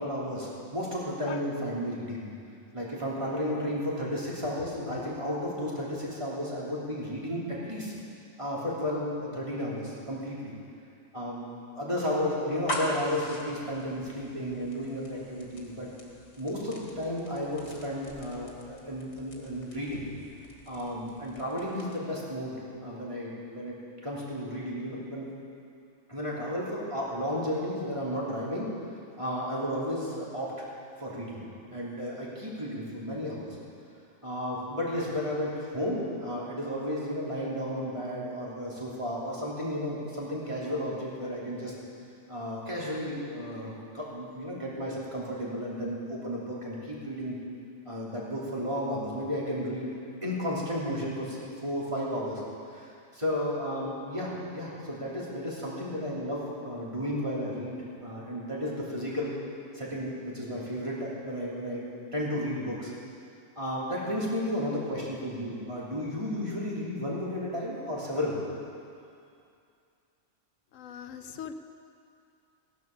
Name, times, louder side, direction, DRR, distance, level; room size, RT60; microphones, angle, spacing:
voice 1, 0.0-2.3 2.7-7.9 8.4-10.5 11.1-15.9 16.4-20.1 20.6-23.7 24.0-25.3 26.1-28.7 29.2-30.5 31.0-31.4 31.7-33.6 34.2-41.7 42.3-47.4 47.9-52.4 52.7-59.3 59.7-61.8 62.1-62.9 63.5-68.4, equal, 25° right, -6 dB, 3.3 m, -33 dB
voice 2, 4.7-5.1 70.7-71.5, left 8 dB, 80° left, 9 dB, 1.1 m, -41 dB
sound 1, 12.5-22.2, equal, 55° left, 2.2 m, -42 dB
16.5 x 10.5 x 6.7 m, 2.5 s
omnidirectional pair, 1.3 m